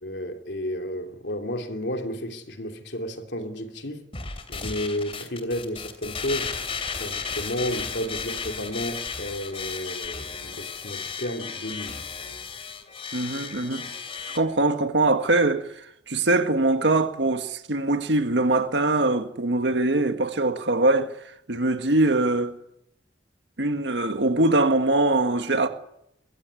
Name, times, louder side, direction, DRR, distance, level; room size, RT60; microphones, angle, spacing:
voice 1, 0.0-4.1 4.5-6.5 7.0-12.0, left 1 dB, 80° left, 2.9 m, -32 dB
sound 1, 4.1-14.4, left 5 dB, 35° left, 3.1 m, -34 dB
voice 2, 13.1-13.9 14.3-21.1 21.5-22.6 23.6-25.7, right 2 dB, 85° right, 1.8 m, -22 dB
23.0 x 16.0 x 9.6 m
head